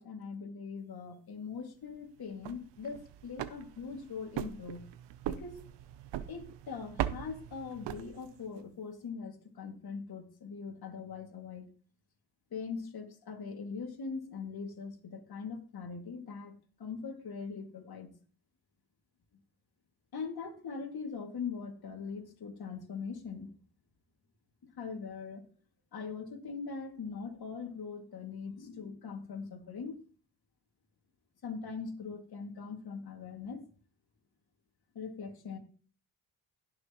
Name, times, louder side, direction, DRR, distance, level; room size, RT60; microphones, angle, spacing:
voice 1, 0.0-4.8 5.2-5.6 6.3-11.7 12.5-16.5 16.8-18.1 20.1-23.5 24.6-25.4 25.9-30.0 31.4-33.7 34.9-35.6, left 5 dB, 60° left, 4 dB, 2.4 m, -41 dB
sound 1, 2.3-8.6, right 12 dB, 80° right, 0.8 m, -40 dB
17.0 x 6.6 x 3.1 m, 0.42 s
supercardioid pair, 55°, 42 cm